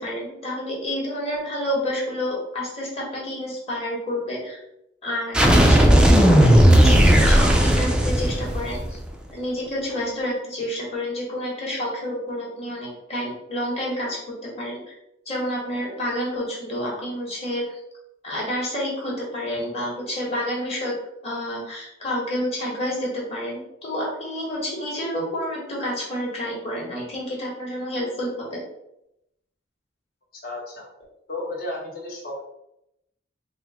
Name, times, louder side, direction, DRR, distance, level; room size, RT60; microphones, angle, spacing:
voice 1, 0.0-4.6 5.0-9.0 9.3-14.9 15.2-17.8 18.2-20.9 21.2-28.6, equal, 35° left, -4 dB, 1.4 m, -29 dB
sound 1, 5.3-9.0, equal, 5° right, 0.4 m, -15 dB
voice 2, 30.4-30.9 31.3-32.4, left 2 dB, 50° left, -2 dB, 1.0 m, -33 dB
3.9 x 2.1 x 4.2 m, 0.83 s
head